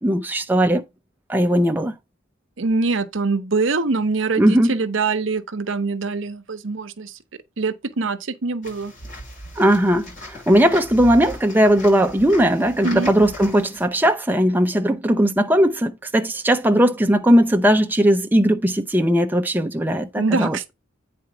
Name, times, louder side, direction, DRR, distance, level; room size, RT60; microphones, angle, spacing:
voice 1, 0.0-0.8 1.3-1.9 4.4-4.7 9.6-20.6, equal, 10° right, 0.6 m, -18 dB
voice 2, 2.6-7.2 7.6-8.9 12.8-13.1 20.2-20.7, right 3 dB, 70° right, 0.8 m, -24 dB
sound 1, 8.6-13.9, left 1 dB, 40° left, 5.3 m, -37 dB
9.0 x 4.2 x 4.8 m
head